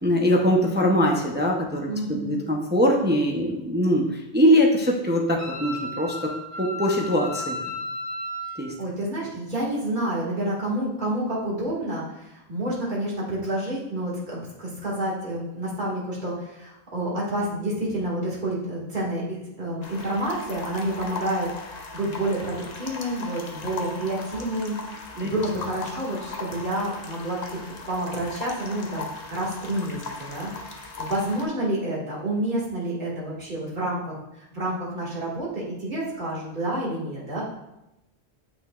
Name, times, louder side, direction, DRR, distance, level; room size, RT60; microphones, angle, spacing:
voice 1, 0.0-6.1 6.6-7.5 8.6-8.7 25.2-25.3, equal, 10° right, 0 dB, 0.6 m, -22 dB
voice 2, 1.9-2.4 8.8-34.2 34.5-37.5, right 1 dB, 45° right, -6 dB, 2.1 m, -29 dB
Wind instrument woodwind instrument, 5.4-8.6, left 1 dB, 15° left, 1.3 m, -34 dB
sound 1, 19.8-31.4, left 3 dB, 45° left, 0.7 m, -38 dB
8.1 x 5.9 x 2.4 m, 0.91 s
omnidirectional pair, 1.1 m